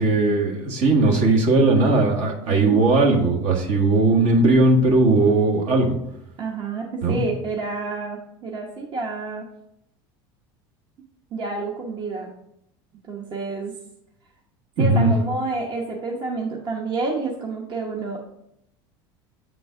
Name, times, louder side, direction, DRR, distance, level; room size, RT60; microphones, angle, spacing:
voice 1, 0.0-5.9 7.0-7.2 14.8-15.1, right 2 dB, 60° right, 1 dB, 1.5 m, -18 dB
voice 2, 2.4-2.8 6.4-9.5 11.3-12.3 13.1-13.8 14.8-18.2, right 3 dB, 40° right, 0 dB, 1.0 m, -29 dB
7.8 x 3.8 x 3.7 m, 0.78 s
supercardioid pair, 100°, 12 cm